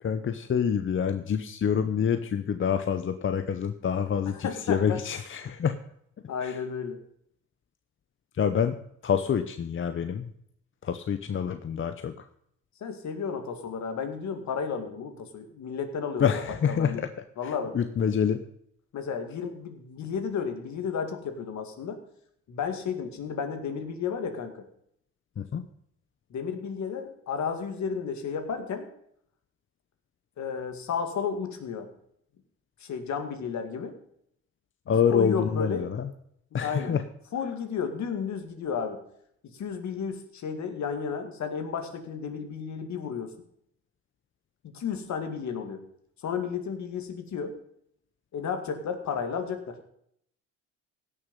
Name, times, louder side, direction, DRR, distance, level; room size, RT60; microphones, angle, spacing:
voice 1, 0.0-5.8 6.4-6.6 8.4-8.8 9.0-10.3 10.8-12.2 16.2-17.1 17.7-18.4 25.4-25.6 34.9-36.1 36.5-37.0, left 7 dB, 40° left, 9 dB, 0.8 m, -27 dB
voice 2, 4.3-5.0 6.3-7.0 12.8-17.0 17.4-17.8 18.9-22.0 22.5-24.6 26.3-28.9 30.4-31.9 32.8-33.9 34.9-35.9 36.5-37.0 37.3-39.0 39.4-43.3 44.6-45.8 46.2-47.6 48.3-49.8, left 6 dB, 65° left, 7 dB, 2.2 m, -33 dB
16.5 x 6.7 x 5.4 m, 0.70 s
cardioid pair, 90°, 30 cm